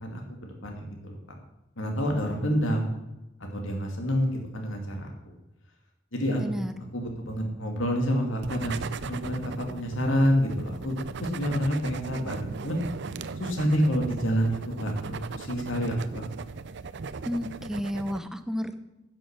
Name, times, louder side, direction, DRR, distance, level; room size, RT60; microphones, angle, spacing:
voice 1, 0.0-1.2 1.8-2.9 3.5-5.1 6.1-6.6 6.9-12.8 13.4-16.2, equal, 85° left, 2 dB, 2.4 m, -28 dB
voice 2, 6.4-6.7 17.2-18.8, equal, 5° right, 9 dB, 0.8 m, -31 dB
sound 1, 8.4-18.2, right 4 dB, 65° right, 0.6 m, -38 dB
11.0 x 7.9 x 7.4 m, 0.96 s
head